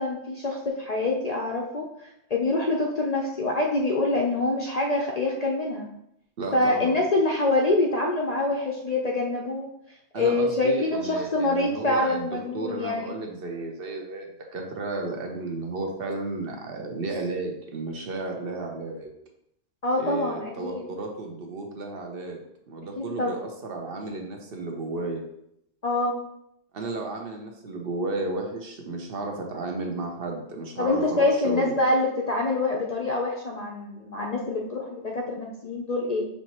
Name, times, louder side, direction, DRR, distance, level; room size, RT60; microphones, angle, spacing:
voice 1, 0.0-5.9 6.5-9.7 10.1-13.0 19.8-20.9 23.0-23.4 25.8-26.2 30.8-36.3, left 2 dB, 50° left, -1 dB, 0.5 m, -25 dB
voice 2, 6.4-7.0 10.1-12.3 12.5-19.1 20.0-22.4 22.7-25.2 26.7-31.8, right 2 dB, 60° right, 2 dB, 0.9 m, -33 dB
5.6 x 3.0 x 2.9 m, 0.78 s
omnidirectional pair, 1.2 m